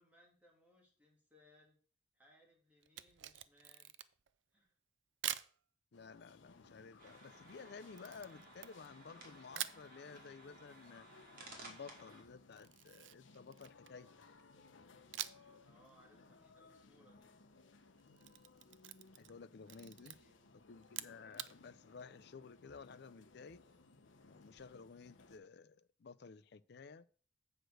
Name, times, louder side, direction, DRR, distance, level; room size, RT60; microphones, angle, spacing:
voice 1, 0.0-1.8 2.1-3.9 4.5-4.7 15.6-17.3 19.6-20.5, left 1 dB, 10° right, 2.9 m, -68 dB
Camera, 2.8-4.3 5.2-5.5 8.0-9.1 9.5-9.9 12.5-14.0 15.1-15.6 15.9-16.0 18.0-19.4 19.6-20.2 20.8-21.5, right 12 dB, 70° right, 0.5 m, -45 dB
sound 1, 5.9-25.4, left 3 dB, 80° left, 0.9 m, -63 dB
voice 2, 5.9-11.1 11.6-14.1 19.2-20.1 20.7-23.6 24.2-27.0, left 5 dB, 60° left, 0.4 m, -54 dB
sound 2, 7.0-12.2, right 2 dB, 50° right, 2.3 m, -57 dB
7.8 x 4.9 x 6.3 m
head